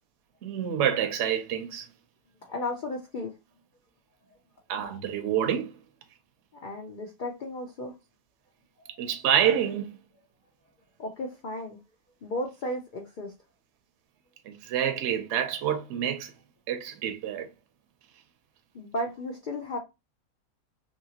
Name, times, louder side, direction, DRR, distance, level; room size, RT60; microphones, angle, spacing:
voice 1, 0.4-1.8 4.7-5.7 9.0-9.9 14.5-16.3 16.7-17.5, right 9 dB, 60° right, 0.8 m, -27 dB
voice 2, 2.4-3.3 6.6-7.9 11.0-11.8 12.2-13.3 18.7-19.8, left 1 dB, 70° left, 0.4 m, -34 dB
2.9 x 2.7 x 2.8 m
omnidirectional pair, 1.5 m